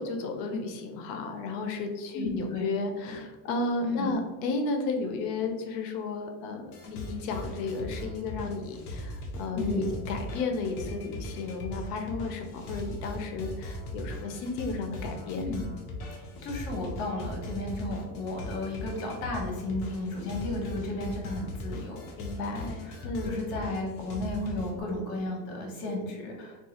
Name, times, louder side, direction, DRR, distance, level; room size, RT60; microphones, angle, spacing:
voice 1, 0.0-15.5 22.2-23.3, left 3 dB, 85° left, 4 dB, 0.7 m, -33 dB
voice 2, 2.1-2.7 3.0-3.2 3.8-4.1 9.6-10.0 15.3-15.7 16.4-22.1 22.8-26.7, left 2 dB, 70° left, 0 dB, 1.2 m, -33 dB
sound 1, 6.6-24.8, left 1 dB, 50° left, 0.8 m, -39 dB
3.7 x 2.4 x 2.8 m, 1.2 s
cardioid pair, 155°, 47 cm